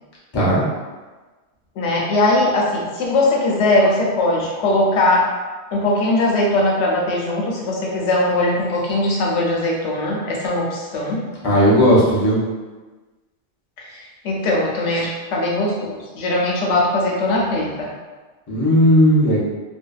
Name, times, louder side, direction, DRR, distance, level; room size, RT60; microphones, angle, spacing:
voice 1, 1.8-5.3 5.7-11.2 13.8-17.9, left 2 dB, 85° left, -2 dB, 0.9 m, -20 dB
voice 2, 11.4-12.4 18.5-19.4, equal, 30° left, -7 dB, 0.5 m, -15 dB
2.6 x 2.1 x 2.3 m, 1.3 s
omnidirectional pair, 1.2 m